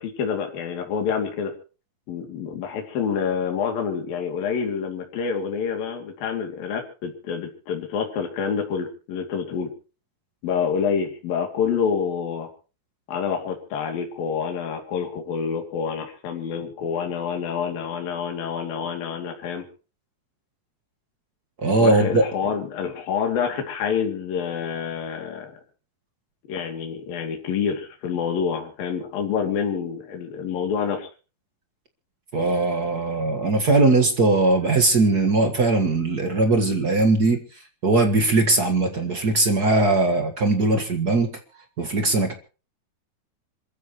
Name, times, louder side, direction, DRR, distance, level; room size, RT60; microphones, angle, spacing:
voice 1, 0.0-1.5 2.1-9.7 10.4-12.5 13.1-19.7 21.8-25.5 26.5-31.1, left 6 dB, 70° left, 4 dB, 4.4 m, -27 dB
voice 2, 21.6-22.2 32.3-41.4 41.8-42.3, right 2 dB, 50° right, 5 dB, 1.1 m, -20 dB
27.0 x 14.5 x 3.1 m, 0.36 s
omnidirectional pair, 4.4 m